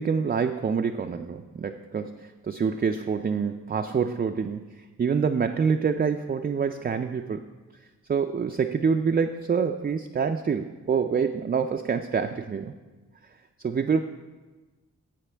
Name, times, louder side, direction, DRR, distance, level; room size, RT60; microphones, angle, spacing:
voice 1, 0.0-4.7 5.0-7.5 8.1-12.7 13.6-14.0, right 6 dB, 30° right, 6 dB, 0.4 m, -26 dB
15.0 x 5.3 x 3.3 m, 1.3 s
cardioid pair, 55°, 33 cm